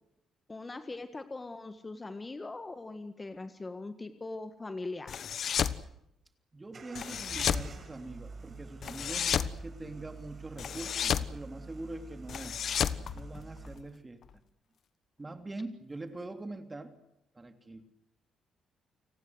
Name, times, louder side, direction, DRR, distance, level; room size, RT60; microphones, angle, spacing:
voice 1, 0.5-5.1, left 3 dB, 25° left, 9 dB, 1.6 m, -41 dB
sound 1, 5.1-5.8 7.0-7.7 8.8-9.5 10.6-11.3 12.3-13.8, left 8 dB, 60° left, 1.2 m, -31 dB
voice 2, 6.5-12.6 13.1-14.2 15.2-16.9 17.3-17.9, right 2 dB, 20° right, 7 dB, 3.2 m, -43 dB
sound 2, 6.7-13.7, right 3 dB, 40° right, 7.0 m, -47 dB
29.5 x 18.5 x 8.0 m, 0.80 s
cardioid pair, 90°, 0 cm